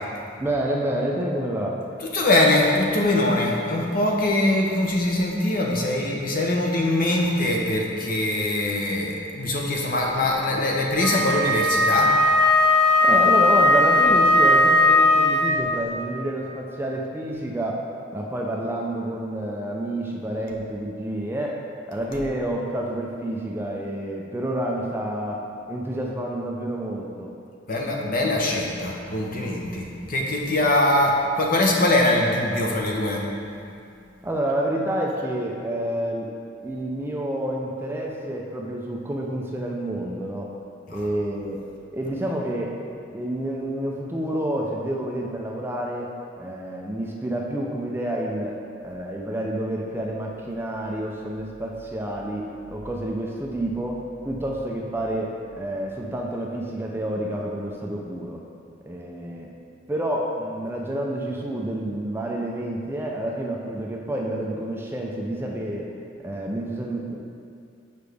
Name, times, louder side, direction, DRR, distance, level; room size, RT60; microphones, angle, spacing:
voice 1, 0.4-1.8 13.0-17.8 18.1-21.6 21.9-25.4 25.7-27.3 28.1-28.2 30.7-30.8 34.2-36.3 36.6-40.5 40.9-41.6 41.9-42.8 43.1-46.1 46.4-48.6 48.8-55.3 55.6-58.4 58.9-59.5 59.9-65.9 66.2-67.1, right 1 dB, 10° right, -1 dB, 0.4 m, -29 dB
voice 2, 2.0-12.1 27.7-33.3 40.9-41.1, left 1 dB, 50° left, -1 dB, 0.8 m, -22 dB
Wind instrument woodwind instrument, 11.0-15.7, left 2 dB, 5° left, 1.0 m, -18 dB
6.7 x 5.0 x 3.4 m, 2.4 s
head